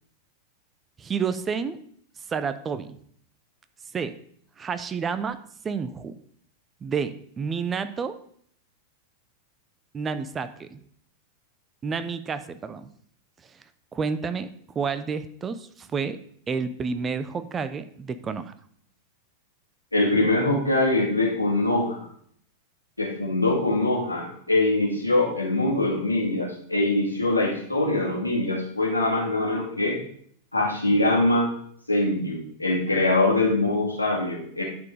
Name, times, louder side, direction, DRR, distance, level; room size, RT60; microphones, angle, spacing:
voice 1, 1.0-1.8 2.3-2.9 3.9-4.2 4.6-5.4 5.6-6.1 6.8-8.1 9.9-10.8 11.8-12.9 13.9-14.5 14.7-16.2 16.5-18.5, right 5 dB, 20° right, 12 dB, 0.6 m, -29 dB
voice 2, 19.9-22.1 23.0-30.0 30.5-31.5 31.9-34.6, left 2 dB, 85° left, -2 dB, 2.2 m, -23 dB
11.0 x 4.6 x 4.8 m, 0.62 s
figure-of-eight pair, 90°, 0 cm